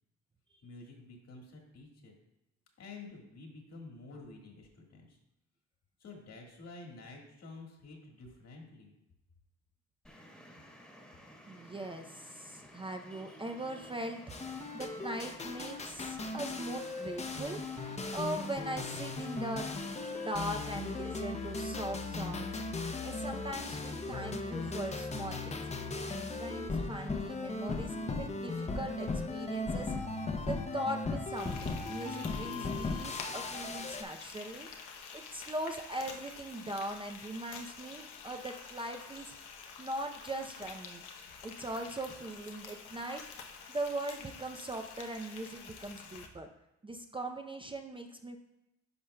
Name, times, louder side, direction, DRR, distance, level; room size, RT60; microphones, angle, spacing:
voice 1, 0.6-2.2 2.8-5.2 6.0-8.9, left 3 dB, 55° left, 1 dB, 1.7 m, -50 dB
Traffic noise roadway noise, 10.0-25.0, equal, ahead, 1.3 m, -54 dB
voice 2, 11.5-19.8 20.1-25.6 26.1-30.0 30.4-39.4 39.8-41.0 41.4-46.5 46.8-48.4, right 1 dB, 15° right, 4 dB, 0.5 m, -40 dB
sound 1, 14.3-34.0, left 3 dB, 20° left, 0.7 m, -37 dB
Frying (food), 31.4-46.3, left 6 dB, 90° left, 0.8 m, -48 dB
10.0 x 5.4 x 2.2 m, 0.92 s
cardioid pair, 90°, 30 cm